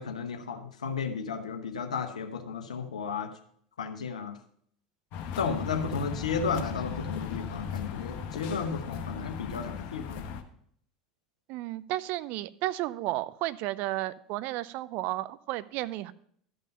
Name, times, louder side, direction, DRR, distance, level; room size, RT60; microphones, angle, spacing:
voice 1, 0.0-3.3 3.8-4.4 5.4-10.3, left 5 dB, 75° left, 7 dB, 1.0 m, -33 dB
sound 1, 5.1-10.4, left 7 dB, 50° left, 1.0 m, -37 dB
voice 2, 11.5-16.1, right 16 dB, 50° right, 17 dB, 0.4 m, -33 dB
12.5 x 5.4 x 5.3 m, 0.63 s
figure-of-eight pair, 75°, 4 cm